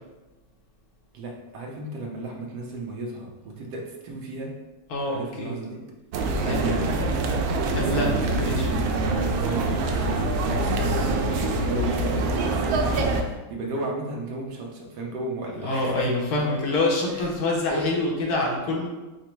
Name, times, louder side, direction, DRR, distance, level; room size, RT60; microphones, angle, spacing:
voice 1, 1.1-4.5 5.1-5.8 6.4-6.9 7.6-9.0 9.4-16.1 17.7-17.8, right 2 dB, 65° right, 0 dB, 1.3 m, -34 dB
voice 2, 4.9-5.5 6.3-6.6 7.7-8.7 15.6-18.9, left 2 dB, 60° left, -2 dB, 1.3 m, -26 dB
sound 1, 6.1-13.2, right 2 dB, 85° right, 1.4 m, -25 dB
5.1 x 2.2 x 4.4 m, 1.1 s
omnidirectional pair, 2.1 m